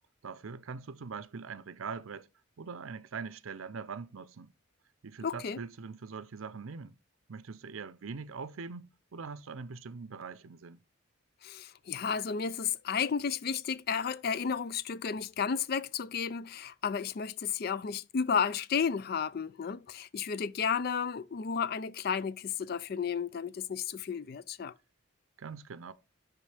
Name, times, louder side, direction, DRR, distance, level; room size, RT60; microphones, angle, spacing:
voice 1, 0.2-2.3 2.6-4.5 5.0-7.0 7.3-10.8 25.4-25.9, right 5 dB, 80° right, 0.5 m, -42 dB
voice 2, 5.2-5.6 11.4-24.7, left 6 dB, 45° left, 0.4 m, -32 dB
11.0 x 3.7 x 3.3 m
head